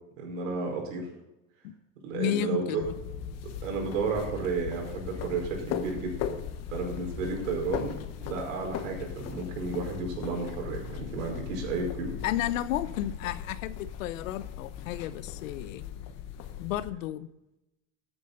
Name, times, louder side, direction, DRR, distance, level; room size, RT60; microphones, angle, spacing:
voice 1, 0.2-1.1 2.0-2.8 3.6-6.2 6.7-12.2, right 4 dB, 90° right, 2 dB, 5.1 m, -32 dB
voice 2, 2.1-2.9 12.2-15.8 16.6-17.3, left 12 dB, 90° left, 15 dB, 0.9 m, -32 dB
sound 1, 2.8-16.9, left 9 dB, 40° left, 1.3 m, -38 dB
13.5 x 9.1 x 4.0 m, 0.92 s
supercardioid pair, 150°, 38 cm